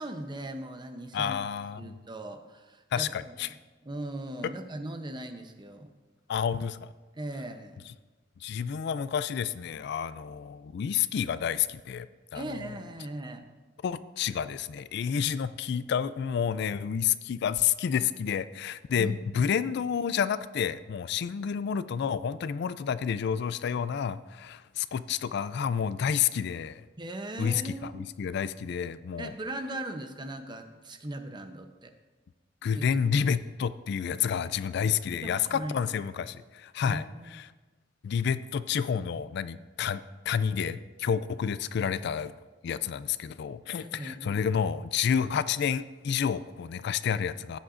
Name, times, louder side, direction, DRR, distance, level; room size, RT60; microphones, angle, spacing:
voice 1, 0.0-1.4 1.8-3.6 3.8-5.9 7.1-7.8 12.3-13.4 18.9-19.5 27.0-28.0 29.2-31.9 32.7-32.9 35.1-36.0 36.8-37.4 43.8-44.4, right 1 dB, 25° right, 6 dB, 0.8 m, -39 dB
voice 2, 1.1-1.9 2.9-3.5 6.3-6.8 8.4-12.1 12.3-12.4 13.8-26.8 27.4-29.3 32.6-37.0 37.3-37.5 38.0-40.0 40.3-42.3 42.6-47.6, left 7 dB, 60° left, 15 dB, 0.3 m, -29 dB
16.0 x 8.6 x 2.6 m, 1.2 s
head